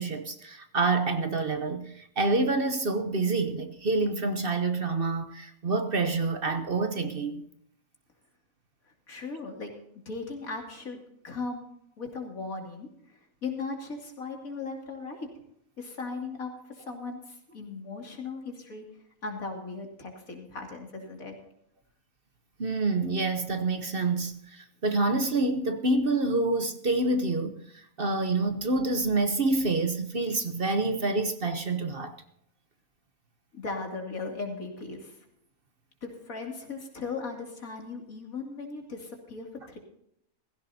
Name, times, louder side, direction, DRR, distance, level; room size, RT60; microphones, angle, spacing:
voice 1, 0.0-7.4 22.6-27.6 28.0-32.1, right 3 dB, 45° right, 1.1 m, -27 dB
voice 2, 9.1-9.7 10.1-11.7 12.0-15.3 15.8-18.9 19.2-21.3 33.5-35.2 36.0-39.8, left 4 dB, 75° left, 3.1 m, -37 dB
16.0 x 16.0 x 2.8 m
omnidirectional pair, 1.5 m